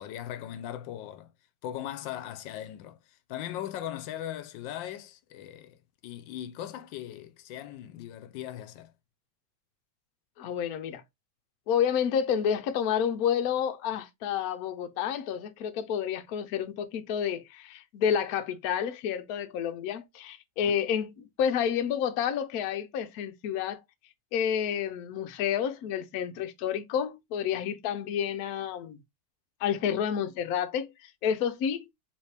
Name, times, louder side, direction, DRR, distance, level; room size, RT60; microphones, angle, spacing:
voice 1, 0.0-1.3 1.6-8.9 20.6-20.7, left 11 dB, 85° left, 1.3 m, -39 dB
voice 2, 10.4-11.0 11.7-23.8 24.3-29.0 29.6-31.9, left 8 dB, 65° left, 1.0 m, -29 dB
4.4 x 3.2 x 3.3 m
omnidirectional pair, 2.0 m